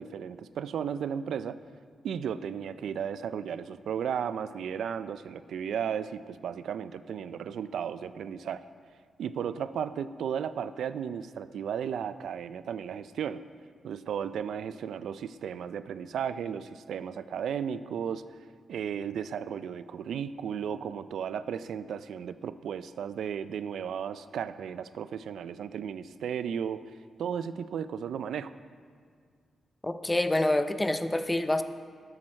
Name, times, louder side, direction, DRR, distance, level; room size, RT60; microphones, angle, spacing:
voice 1, 0.0-1.6 2.0-8.6 9.2-13.4 13.8-18.2 18.7-26.9 27.2-28.5, right 8 dB, 75° right, 14 dB, 0.3 m, -34 dB
voice 2, 29.8-31.6, left 1 dB, 10° left, 10 dB, 0.4 m, -27 dB
12.5 x 8.6 x 4.3 m, 2.1 s
wide cardioid pair, 145°, 0 cm